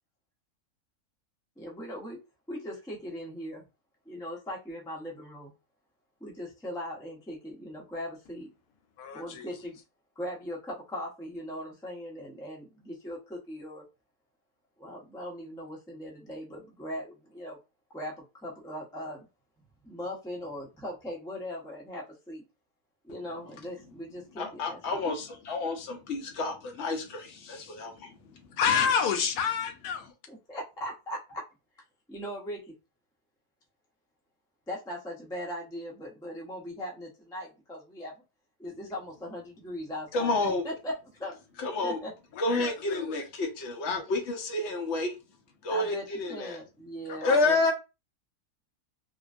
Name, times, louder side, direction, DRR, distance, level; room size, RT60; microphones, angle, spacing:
voice 1, 1.6-2.2 2.5-3.7 4.1-5.5 6.2-8.5 9.1-9.8 10.2-13.8 14.8-17.6 17.9-19.3 19.8-22.5 23.0-25.1 30.3-31.4 32.1-32.7 34.7-38.1 38.6-41.4 41.8-42.1 45.7-47.7, equal, 5° left, 0.4 m, -39 dB
voice 2, 9.0-9.5 28.6-30.1 42.5-43.3 47.1-47.4, left 7 dB, 80° left, 1.2 m, -29 dB
voice 3, 24.4-27.9 40.1-40.6 41.6-42.0 42.4-45.1 45.6-46.5 47.2-47.7, left 2 dB, 55° left, 0.8 m, -29 dB
2.9 x 2.5 x 2.4 m
omnidirectional pair, 1.7 m